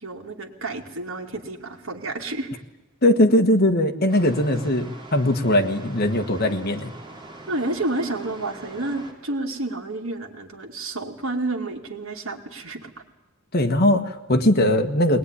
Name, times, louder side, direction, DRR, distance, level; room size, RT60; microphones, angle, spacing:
voice 1, 0.0-2.5 7.5-12.9, right 2 dB, 70° right, 2 dB, 2.6 m, -30 dB
voice 2, 3.0-6.9 13.5-15.2, left 1 dB, 45° left, 5 dB, 1.5 m, -20 dB
sound 1, 4.1-9.1, right 2 dB, 25° right, 3.5 m, -42 dB
21.0 x 19.5 x 9.9 m, 1.0 s
head